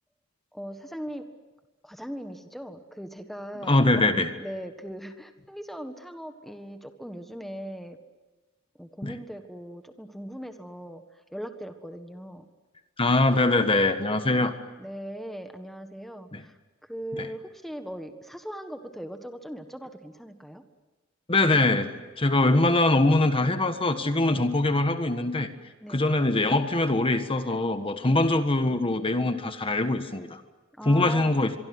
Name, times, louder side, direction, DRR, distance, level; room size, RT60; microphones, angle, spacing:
voice 1, 0.5-1.2 1.8-3.8 4.4-8.0 8.8-11.0 11.3-12.4 14.8-16.6 16.8-20.6 24.3-24.4 25.8-26.0 28.0-28.2 30.8-31.4, equal, ahead, 7 dB, 1.5 m, -39 dB
voice 2, 3.6-4.3 9.0-9.1 13.0-14.5 16.3-16.4 17.2-17.3 21.3-21.9 22.2-25.5 25.9-30.4 30.8-31.5, left 2 dB, 25° left, 8 dB, 1.5 m, -23 dB
24.5 x 24.0 x 9.6 m, 1.2 s
head